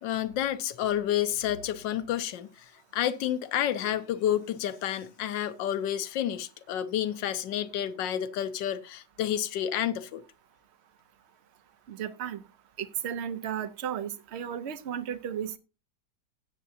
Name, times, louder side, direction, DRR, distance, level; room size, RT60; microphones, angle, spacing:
voice 1, 0.0-10.2, left 11 dB, 85° left, 1.4 m, -30 dB
voice 2, 11.9-12.4 12.8-15.6, right 9 dB, 50° right, 0.9 m, -34 dB
17.0 x 7.0 x 2.7 m
omnidirectional pair, 1.9 m